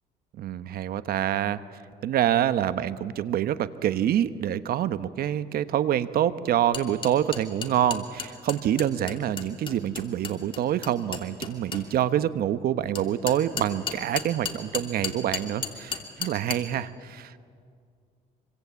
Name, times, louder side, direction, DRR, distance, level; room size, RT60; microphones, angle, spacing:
voice 1, 0.4-1.6 2.0-17.4, right 11 dB, 65° right, 13 dB, 1.0 m, -26 dB
sound 1, 6.7-11.8 12.9-16.5, left 6 dB, 30° left, 2.9 m, -33 dB
26.0 x 24.5 x 8.3 m, 2.2 s
cardioid pair, 110°, 17 cm